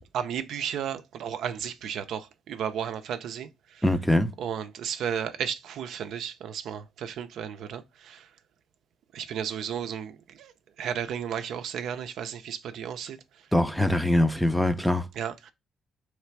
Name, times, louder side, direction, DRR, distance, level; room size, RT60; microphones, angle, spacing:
voice 1, 0.0-3.8 4.4-8.3 9.1-10.5 10.8-13.2 15.1-15.5, right 8 dB, 75° right, 0.5 m, -34 dB
voice 2, 3.8-4.3 13.5-15.0, left 1 dB, ahead, 0.5 m, -23 dB
3.3 x 3.2 x 4.5 m
cardioid pair, 90°, 0 cm